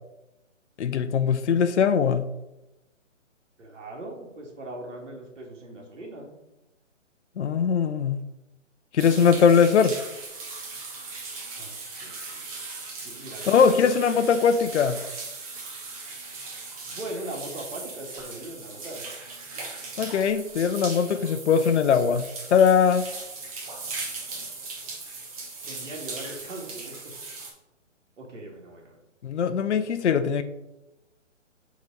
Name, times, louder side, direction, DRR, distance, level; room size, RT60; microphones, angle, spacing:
voice 1, 0.8-2.3 7.4-8.2 8.9-10.0 13.5-15.0 20.0-23.1 29.2-30.4, left 6 dB, 65° left, 10 dB, 0.6 m, -21 dB
voice 2, 3.6-6.4 11.6-12.4 13.0-13.9 16.8-19.0 25.6-27.0 28.2-29.0 29.7-29.9, right 1 dB, 70° right, -1 dB, 2.2 m, -40 dB
sound 1, 9.0-27.5, right 3 dB, 30° right, 1.2 m, -38 dB
5.2 x 4.0 x 5.4 m, 0.95 s
hypercardioid pair, 145°, 38 cm